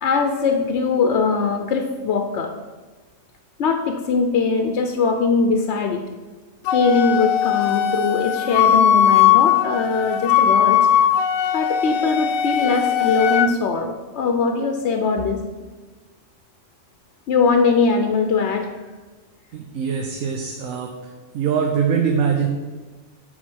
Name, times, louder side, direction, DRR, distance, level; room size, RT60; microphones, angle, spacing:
voice 1, 0.0-2.5 3.6-6.0 6.7-10.9 11.5-15.4 17.3-18.7, left 4 dB, 65° left, 4 dB, 0.9 m, -21 dB
Wind instrument woodwind instrument, 6.7-13.5, left 9 dB, 85° left, 1.0 m, -18 dB
voice 2, 19.5-20.9 21.3-22.5, right 6 dB, 85° right, 2 dB, 1.2 m, -22 dB
8.6 x 4.0 x 6.1 m, 1.3 s
omnidirectional pair, 1.4 m